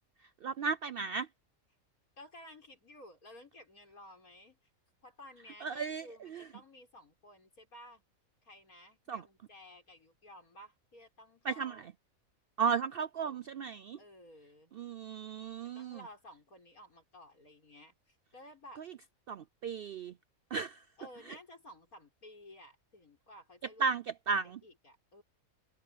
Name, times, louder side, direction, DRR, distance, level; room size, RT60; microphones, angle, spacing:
voice 1, 0.4-1.3 5.6-6.0 9.1-9.2 11.5-11.8 12.6-14.0 14.8-16.0 19.3-20.1 20.5-20.7 23.8-24.6, right 5 dB, 70° right, 0.5 m, -34 dB
voice 2, 2.2-4.6 5.0-8.0 8.4-11.9 12.6-14.8 15.7-18.9 21.0-24.0 24.3-25.2, left 1 dB, 90° left, 6.8 m, -55 dB
omnidirectional pair, 1.5 m